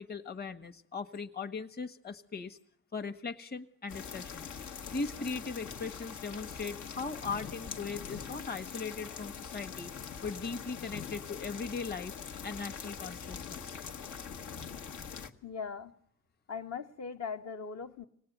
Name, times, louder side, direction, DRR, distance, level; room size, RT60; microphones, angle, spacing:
voice 1, 0.0-2.6 2.9-4.5 4.9-9.9 10.2-12.1 12.4-13.8, left 4 dB, 30° left, 1.4 m, -39 dB
sound 1, 3.9-15.3, left 7 dB, 80° left, 1.7 m, -43 dB
voice 2, 15.4-15.9 16.5-18.1, left 5 dB, 60° left, 1.5 m, -39 dB
25.0 x 18.5 x 9.3 m
cardioid pair, 90°, 30 cm